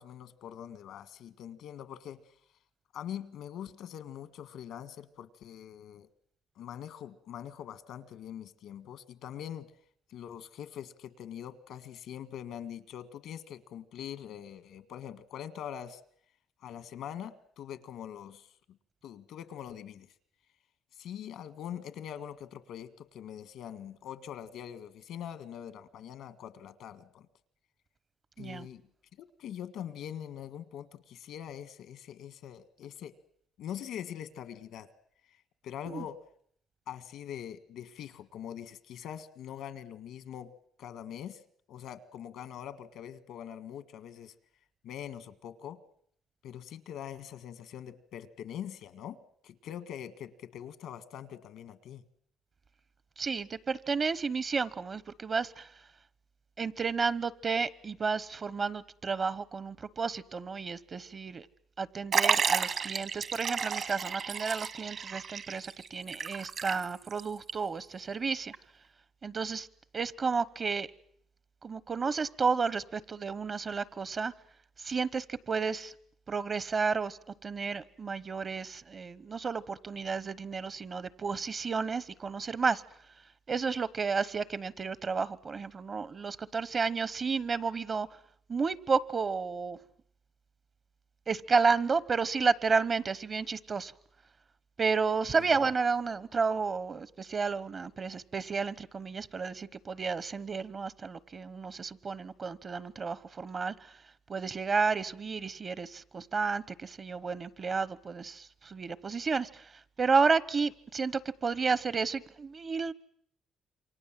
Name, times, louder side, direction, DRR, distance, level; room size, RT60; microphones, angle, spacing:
voice 1, 0.0-2.2 2.9-6.1 6.5-9.7 10.1-16.0 16.6-18.5 19.0-20.1 20.9-27.3 28.4-28.8 29.2-33.1 33.6-34.9 35.6-36.2 36.9-40.5 40.8-41.4 41.7-44.3 44.8-45.8 46.4-52.0 95.3-95.6, left 9 dB, 85° left, 13 dB, 1.7 m, -43 dB
voice 2, 53.2-55.7 56.6-61.5 61.8-68.5 69.2-69.7 69.9-70.9 71.6-74.3 74.8-75.9 76.3-82.8 83.5-88.1 88.5-89.8 91.3-93.9 94.8-103.9 104.3-109.7 110.0-112.9, right 5 dB, 40° right, 19 dB, 1.0 m, -31 dB
Liquid, 62.1-67.2 67.5-67.6 68.5-68.6, right 6 dB, 55° right, 1.6 m, -32 dB
28.0 x 24.0 x 7.6 m, 0.65 s
cardioid pair, 90°, 0 cm